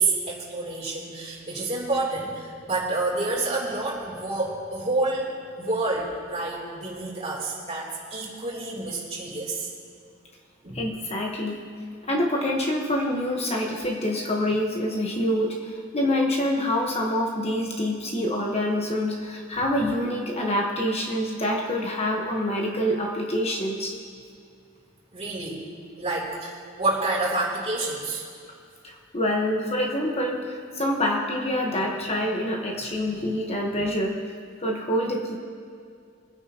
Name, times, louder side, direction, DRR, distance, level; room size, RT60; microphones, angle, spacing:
voice 1, 0.0-5.3 5.6-9.7 10.6-10.9 25.1-25.6 26.0-28.2, right 2 dB, 35° right, -4 dB, 3.4 m, -28 dB
voice 2, 10.7-11.6 12.0-23.9 28.8-34.2 34.6-35.4, left 1 dB, 30° left, -1 dB, 1.3 m, -26 dB
24.5 x 9.9 x 3.0 m, 2.3 s
head